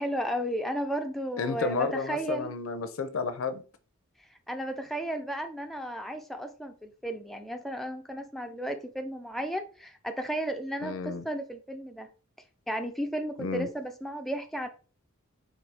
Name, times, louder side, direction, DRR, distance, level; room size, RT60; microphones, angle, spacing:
voice 1, 0.0-2.5 4.3-12.1 12.7-14.7, equal, ahead, 0.3 m, -34 dB
voice 2, 1.4-3.6 10.8-11.2 13.4-13.7, left 4 dB, 70° left, 0.5 m, -31 dB
4.1 x 2.6 x 3.4 m
head